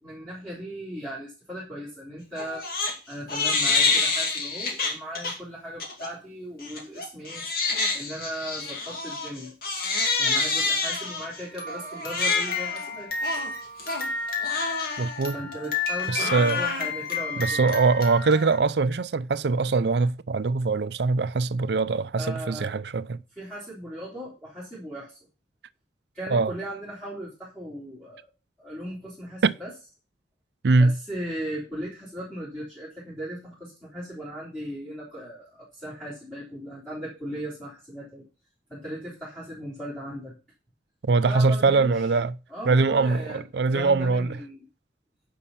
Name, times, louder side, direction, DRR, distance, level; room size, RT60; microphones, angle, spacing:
voice 1, 0.0-2.7 3.1-7.4 7.9-9.5 10.2-13.1 15.3-17.6 22.2-22.7 23.4-25.2 26.1-28.2 28.6-29.7 30.8-38.2 38.7-40.3 41.2-42.1 42.5-44.6, equal, 5° left, 3.4 m, -37 dB
Crying sobbing, 2.3-2.9 3.3-5.3 5.8-6.1 6.6-18.6, left 4 dB, 55° left, 2.5 m, -28 dB
voice 2, 15.0-15.4 16.1-16.6 17.4-23.2 26.3-26.5 29.4-29.5 30.6-30.9 41.1-42.3 42.7-44.3, right 4 dB, 65° right, 0.5 m, -22 dB
9.9 x 5.5 x 5.7 m
head